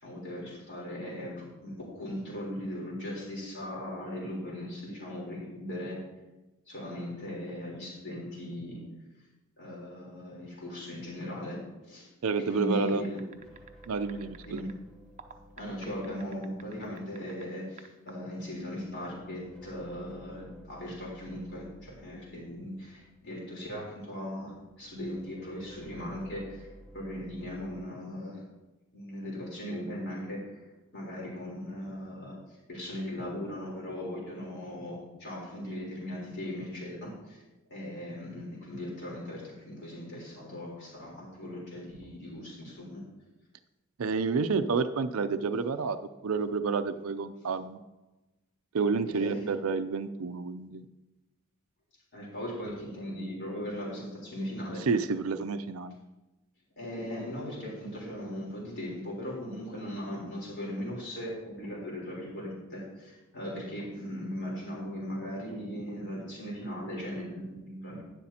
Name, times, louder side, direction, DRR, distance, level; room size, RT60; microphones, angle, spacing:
voice 1, 0.0-6.0 6.7-8.8 9.6-12.1 12.5-13.2 14.4-14.7 15.6-26.7 26.9-28.4 28.9-30.6 30.9-37.4 37.7-43.0 49.1-49.5 52.1-54.9 56.8-68.0, equal, 55° left, -4 dB, 3.8 m, -38 dB
voice 2, 12.2-13.0 13.9-14.7 44.0-47.8 48.7-50.9 54.8-56.0, right 4 dB, 80° right, 10 dB, 0.5 m, -29 dB
sound 1, 12.9-14.7 15.2-17.4 17.8-18.1, right 7 dB, 35° right, 0.6 m, -50 dB
sound 2, 13.3-17.5 18.3-24.0 24.4-27.9, equal, 5° left, 3.6 m, -54 dB
11.5 x 10.0 x 2.9 m, 1.0 s
head